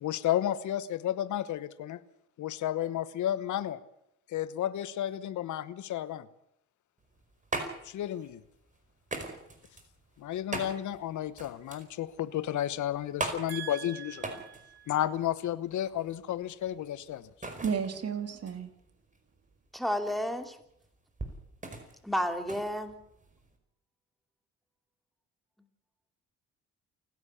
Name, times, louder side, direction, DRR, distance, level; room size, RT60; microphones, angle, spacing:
voice 1, 0.0-2.0 2.4-3.8 4.3-6.3 7.8-8.4 10.2-14.3 14.9-17.3, left 12 dB, 75° left, 1.0 m, -32 dB
sound 1, 7.0-23.6, right 2 dB, 25° right, 4.9 m, -41 dB
voice 2, 13.5-14.9 17.6-18.7, right 7 dB, 55° right, 2.9 m, -35 dB
voice 3, 19.7-20.6 22.0-22.9, equal, ahead, 2.8 m, -31 dB
28.5 x 11.0 x 8.4 m
cardioid pair, 90°, 30 cm